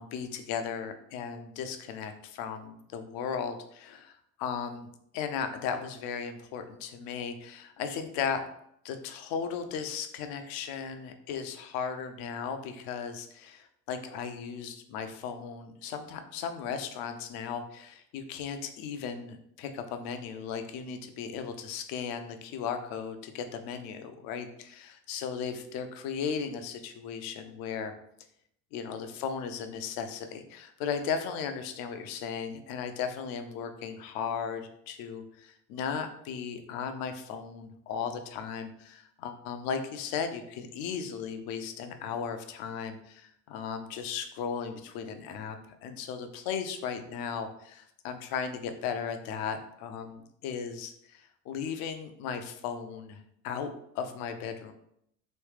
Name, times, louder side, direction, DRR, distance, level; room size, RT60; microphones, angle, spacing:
voice 1, 0.0-4.9 5.1-8.4 8.8-27.9 28.7-54.7, left 6 dB, 45° left, 8 dB, 0.6 m, -36 dB
3.2 x 3.0 x 3.1 m, 0.73 s
figure-of-eight pair, 65°, 49 cm